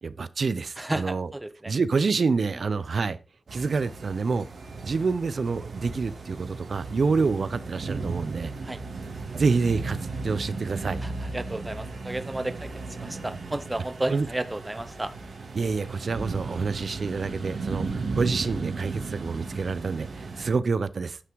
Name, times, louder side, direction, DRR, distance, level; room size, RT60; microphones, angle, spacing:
voice 1, 0.0-1.3 1.7-3.2 3.5-4.5 4.8-8.5 9.3-10.0 10.2-11.0 14.1-14.3 15.5-21.2, right 4 dB, 60° right, 0.6 m, -27 dB
voice 2, 0.8-1.7 8.6-8.8 11.0-12.7 13.0-15.1, right 1 dB, 15° right, 0.6 m, -32 dB
sound 1, 3.5-20.5, right 3 dB, 80° right, 2.6 m, -35 dB
9.7 x 5.9 x 4.6 m
wide cardioid pair, 130°, 0 cm